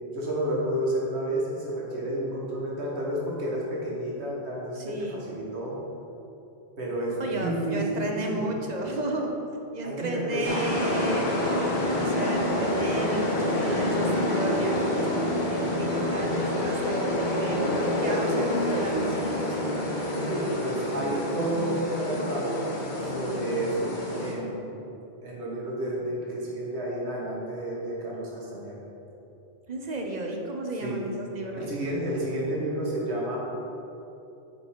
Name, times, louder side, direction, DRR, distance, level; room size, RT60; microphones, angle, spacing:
voice 1, 0.1-5.8 6.8-8.5 9.8-10.5 20.1-22.7 23.0-24.6 25.2-28.8 30.8-31.0 31.5-33.4, right 1 dB, 80° right, -4 dB, 1.8 m, -30 dB
voice 2, 4.7-5.3 7.2-9.3 9.7-11.3 11.8-17.6 18.0-19.6 29.7-31.7, right 1 dB, 45° right, 2 dB, 0.8 m, -33 dB
sound 1, 10.4-24.3, left 1 dB, 50° left, 1.1 m, -27 dB
8.0 x 5.4 x 4.4 m, 2.9 s
omnidirectional pair, 1.1 m